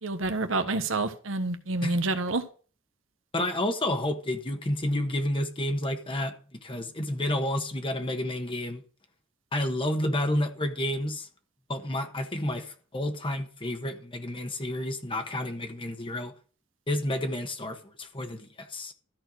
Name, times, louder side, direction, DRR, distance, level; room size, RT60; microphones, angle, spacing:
voice 1, 0.0-2.4, right 2 dB, 85° right, 1.3 m, -28 dB
voice 2, 3.3-8.8 9.5-11.3 11.7-16.3 16.9-18.9, left 1 dB, 25° left, 1.3 m, -30 dB
13.5 x 4.5 x 6.3 m
head